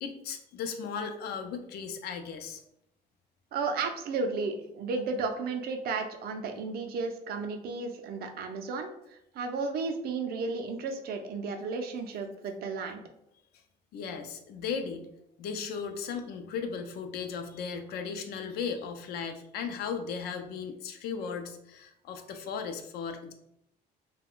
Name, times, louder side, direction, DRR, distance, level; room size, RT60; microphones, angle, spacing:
voice 1, 0.0-2.6 13.9-15.1 15.4-23.3, left 6 dB, 70° left, 6 dB, 0.5 m, -36 dB
voice 2, 3.5-13.0, right 4 dB, 65° right, 5 dB, 0.5 m, -33 dB
2.3 x 2.2 x 3.5 m, 0.77 s
cardioid pair, 110°, 17 cm